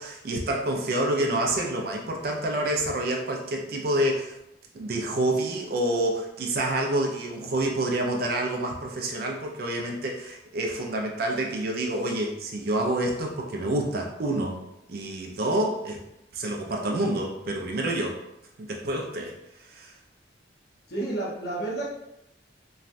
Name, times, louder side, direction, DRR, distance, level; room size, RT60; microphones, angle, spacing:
voice 1, 0.0-4.4 4.7-14.6 14.9-16.0 16.3-18.2 18.6-19.3 19.6-19.9, right 1 dB, 55° right, 1 dB, 0.5 m, -28 dB
voice 2, 20.9-21.9, right 2 dB, 60° left, -4 dB, 0.8 m, -30 dB
3.1 x 2.3 x 2.5 m, 0.86 s
head